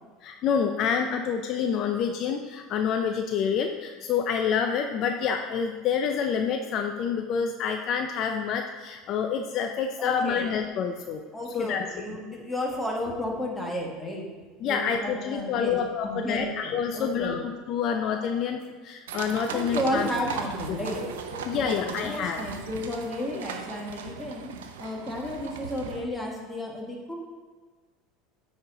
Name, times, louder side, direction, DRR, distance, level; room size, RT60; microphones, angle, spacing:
voice 1, 0.2-11.2 11.5-11.9 14.6-20.1 20.7-20.8 21.4-22.4 23.3-23.4, left 7 dB, 55° left, 5 dB, 0.5 m, -28 dB
voice 2, 10.0-10.5 11.3-14.3 14.6-15.8 16.0-17.3 19.5-24.5 24.8-27.2, left 1 dB, 10° left, -1 dB, 1.7 m, -33 dB
sound 1, 19.1-26.0, right 6 dB, 90° right, 0.6 m, -38 dB
9.0 x 4.4 x 3.9 m, 1.4 s
supercardioid pair, 100°, 0 cm